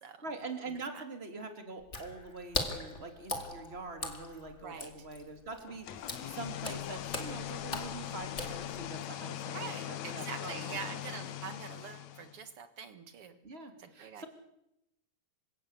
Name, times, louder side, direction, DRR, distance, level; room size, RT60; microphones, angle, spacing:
voice 1, 0.2-10.8 11.1-11.3 13.4-14.3, right 3 dB, 15° right, 6 dB, 2.9 m, -44 dB
Water / Splash splatter, 1.8-9.0, left 2 dB, 25° left, 1.9 m, -40 dB
sound 1, 5.7-12.4, left 12 dB, 80° left, 1.6 m, -41 dB
voice 2, 9.5-13.4 14.0-14.2, right 6 dB, 60° right, 10 dB, 1.5 m, -44 dB
27.5 x 16.5 x 8.3 m, 0.80 s
omnidirectional pair, 4.8 m